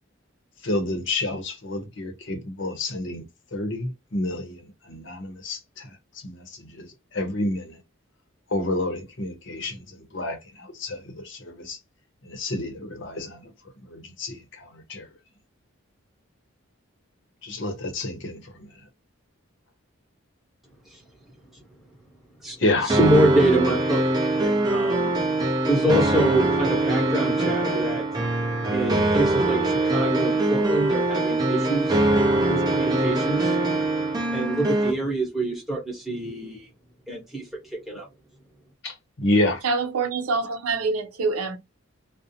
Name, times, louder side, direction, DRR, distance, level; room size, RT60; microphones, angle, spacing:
voice 1, 0.6-3.3 3.5-7.8 8.5-11.8 12.2-13.5 13.8-15.1 17.4-18.9 22.6-23.0 38.8-39.6, left 2 dB, 60° left, 0.7 m, -29 dB
voice 2, 22.9-24.0 24.4-25.1 25.7-28.0 28.7-32.0 32.5-33.6 34.3-36.7 37.1-37.4 37.7-38.1, right 1 dB, ahead, 0.9 m, -25 dB
sound 1, 22.9-34.9, right 2 dB, 20° right, 0.5 m, -22 dB
voice 3, 39.6-41.6, right 4 dB, 85° right, 0.5 m, -25 dB
2.5 x 2.0 x 2.7 m
head